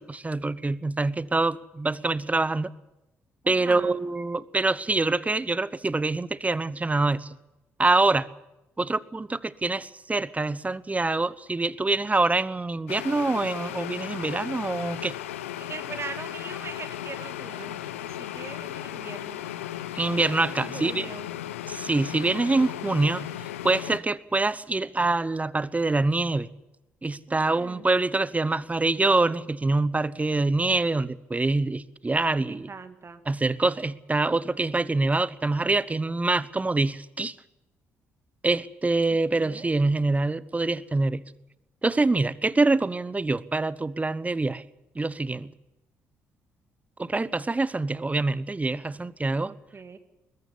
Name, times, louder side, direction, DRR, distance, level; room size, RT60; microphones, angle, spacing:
voice 1, 0.0-2.7 3.5-7.3 7.8-8.3 8.8-15.1 19.9-21.1 21.7-23.2 23.6-26.5 27.0-32.7 33.3-37.3 38.4-41.2 41.8-44.6 44.9-45.5 47.0-49.5, right 3 dB, 20° right, 1.0 m, -25 dB
voice 2, 3.4-4.0 15.6-19.4 20.6-21.3 27.3-27.9 32.3-33.2 39.3-39.7 49.5-50.0, right 4 dB, 35° right, 2.1 m, -41 dB
sound 1, 12.9-24.0, left 12 dB, 85° left, 0.9 m, -36 dB
21.5 x 13.5 x 9.9 m
hypercardioid pair, 45°, 7 cm